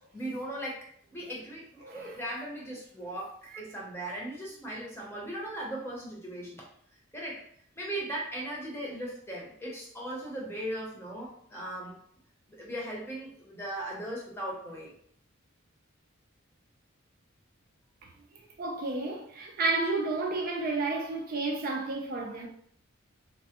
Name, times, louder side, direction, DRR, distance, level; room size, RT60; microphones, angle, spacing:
voice 1, 0.1-0.8 1.1-6.7 7.1-7.4 7.8-12.0 12.5-14.9, right 1 dB, 10° left, 0.7 m, -38 dB
voice 2, 1.8-2.2 3.5-3.6 18.0-18.1 18.6-22.5, right 3 dB, 45° right, 0.4 m, -31 dB
3.2 x 2.1 x 2.8 m
head